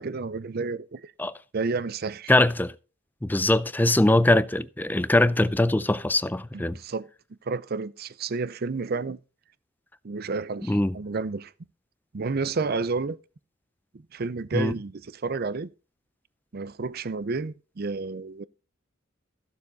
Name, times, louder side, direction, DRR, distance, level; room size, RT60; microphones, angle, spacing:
voice 1, 0.0-1.1 1.5-2.3 6.5-7.1 7.5-9.2 10.0-11.5 12.1-13.2 14.1-15.7 16.5-18.5, right 4 dB, 50° right, 0.5 m, -30 dB
voice 2, 2.3-2.7 3.2-6.8 10.7-11.0 14.5-14.7, left 1 dB, 10° left, 0.4 m, -22 dB
14.5 x 7.0 x 4.0 m
head